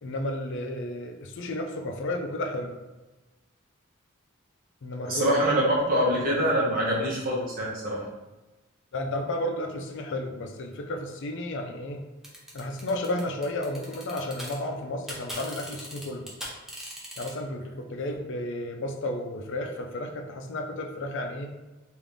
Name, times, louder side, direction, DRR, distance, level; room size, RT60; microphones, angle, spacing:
voice 1, 0.0-2.8 4.8-5.3 5.9-6.2 6.8-7.0 8.9-12.0 12.5-16.3 17.2-21.5, left 1 dB, 60° left, 3 dB, 0.5 m, -32 dB
voice 2, 5.1-8.1, equal, 45° right, -5 dB, 1.1 m, -25 dB
sound 1, 12.2-14.6 14.8-17.3, equal, ahead, 0.7 m, -39 dB
3.7 x 2.6 x 3.4 m, 1.1 s
head